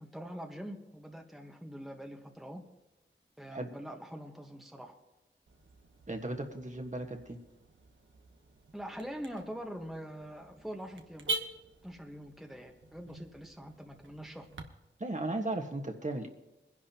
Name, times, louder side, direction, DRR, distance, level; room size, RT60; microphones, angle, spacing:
voice 1, 0.0-2.6 3.4-4.9 8.7-11.4 11.8-14.5, equal, ahead, 2 dB, 1.3 m, -44 dB
Car / Alarm, 5.5-14.6, right 2 dB, 75° right, 1.1 m, -45 dB
voice 2, 6.1-7.4 15.0-16.3, right 2 dB, 40° right, 3 dB, 1.5 m, -36 dB
21.5 x 11.0 x 2.9 m, 0.99 s
cardioid pair, 50°, 20 cm